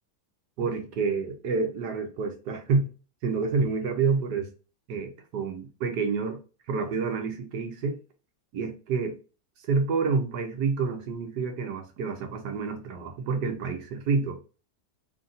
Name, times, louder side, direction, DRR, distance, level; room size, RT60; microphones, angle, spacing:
voice 1, 0.6-2.9 3.2-4.5 4.9-6.4 6.7-8.0 8.5-9.1 9.7-14.4, right 4 dB, 75° right, 1.4 m, -28 dB
3.4 x 2.6 x 3.9 m
omnidirectional pair, 1.8 m